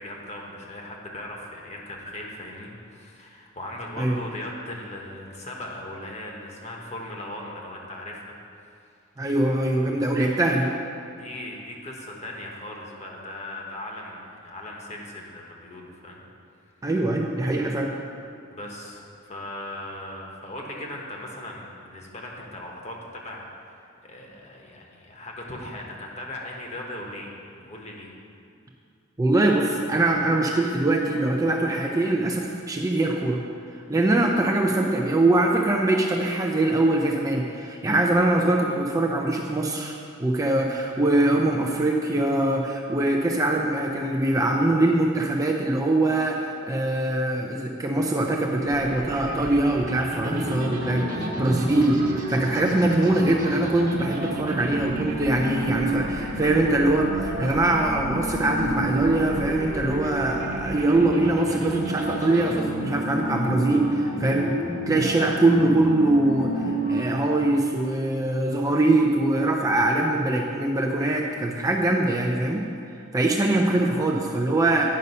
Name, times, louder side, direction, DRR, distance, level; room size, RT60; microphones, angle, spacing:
voice 1, 0.0-8.3 11.2-16.2 18.5-28.1, left 1 dB, 35° left, -1 dB, 1.1 m, -38 dB
voice 2, 9.2-10.7 16.8-17.9 29.2-33.4 33.9-52.0 52.3-64.6 64.9-72.6 73.1-74.8, right 2 dB, 15° right, 0 dB, 0.5 m, -23 dB
sound 1, 48.7-62.6, right 1 dB, 40° right, 1.0 m, -35 dB
sound 2, 50.2-66.9, equal, 85° left, 2.1 m, -31 dB
9.6 x 5.3 x 5.4 m, 2.4 s
head